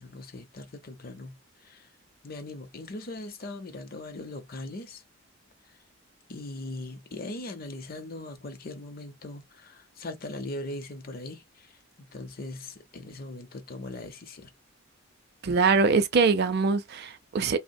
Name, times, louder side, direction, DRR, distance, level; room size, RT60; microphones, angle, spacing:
voice 1, 0.0-1.9 2.2-5.0 5.6-5.7 6.3-11.8 12.1-14.5, left 2 dB, 45° left, 0.6 m, -40 dB
voice 2, 15.4-17.6, right 4 dB, 50° right, 0.5 m, -23 dB
3.3 x 2.1 x 2.6 m
head